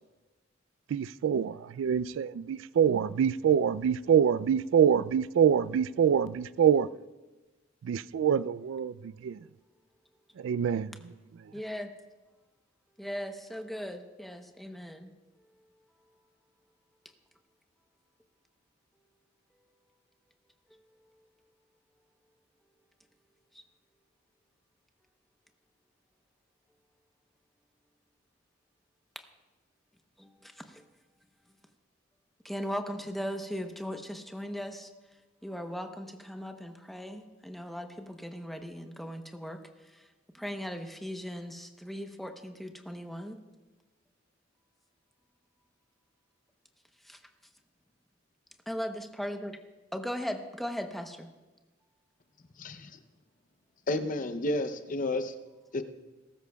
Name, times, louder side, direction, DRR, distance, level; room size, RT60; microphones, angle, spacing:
voice 1, 0.9-6.9 7.8-9.4 10.4-11.1, right 8 dB, 80° right, 0.3 m, -25 dB
voice 2, 11.5-11.9 13.0-15.1 30.2-30.8 32.4-34.9 35.4-39.6 39.9-40.0 40.3-43.4 47.0-47.2 48.7-49.6 49.9-51.3, equal, ahead, 0.8 m, -38 dB
voice 3, 52.6-53.0 53.9-55.3 55.7-55.8, left 2 dB, 45° left, 0.7 m, -31 dB
20.5 x 13.0 x 2.3 m
head